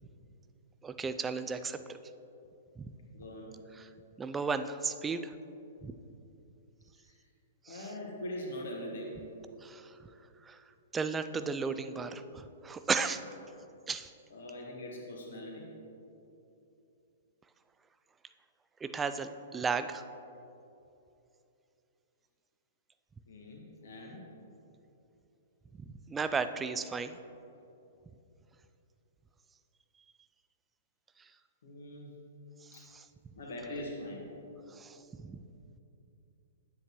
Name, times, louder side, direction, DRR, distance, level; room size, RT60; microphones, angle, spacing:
voice 1, 0.8-2.0 2.8-2.9 3.8-3.9 4.2-5.3 5.8-5.9 7.6-7.9 9.6-10.1 10.4-10.6 10.9-13.2 13.9-14.1 18.8-20.1 25.7-27.2 31.2-31.3 32.6-33.3 34.7-35.4, right 5 dB, 15° right, 11 dB, 0.4 m, -35 dB
voice 2, 3.1-3.6 7.0-7.2 7.7-9.2 14.3-15.7 23.3-24.2 31.6-32.2 32.7-32.8 33.4-34.2, left 1 dB, 65° left, -1 dB, 1.7 m, -42 dB
9.5 x 8.0 x 3.1 m, 2.8 s
figure-of-eight pair, 110°, 0 cm